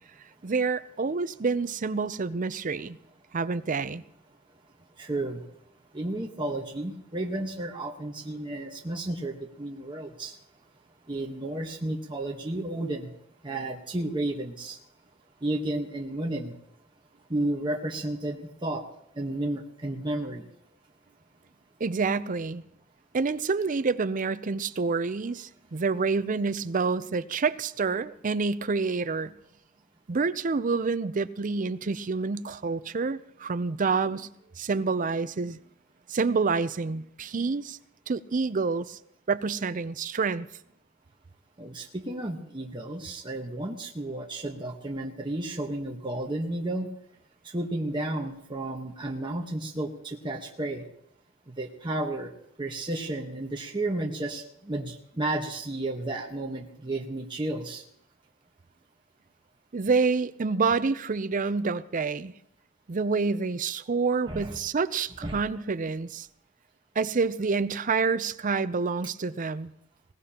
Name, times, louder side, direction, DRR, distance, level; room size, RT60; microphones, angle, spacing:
voice 1, 0.4-3.0 3.3-4.0 21.8-22.6 23.1-29.3 30.1-34.3 34.6-35.6 36.1-37.8 38.1-39.0 39.3-40.5 59.7-62.3 62.9-66.3 67.0-69.7, right 4 dB, 40° right, 0.5 m, -28 dB
voice 2, 5.0-5.5 5.9-10.4 11.1-13.1 13.4-14.8 15.4-16.6 17.3-18.8 19.1-20.4 41.6-46.9 47.4-50.9 51.5-52.3 52.6-57.8 64.3-64.6 65.2-65.4, right 1 dB, 25° right, 1.2 m, -32 dB
20.5 x 18.5 x 2.9 m
head